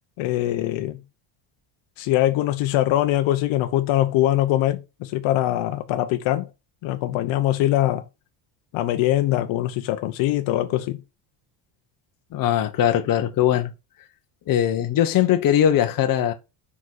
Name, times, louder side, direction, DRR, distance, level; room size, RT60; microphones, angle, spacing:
voice 1, 0.2-1.0 2.0-6.5 6.8-8.0 8.7-11.0, left 14 dB, 65° left, 1.1 m, -22 dB
voice 2, 12.3-13.7 14.5-16.3, left 10 dB, 40° left, 1.2 m, -20 dB
5.6 x 5.1 x 6.3 m
cardioid pair, 165°, 49 cm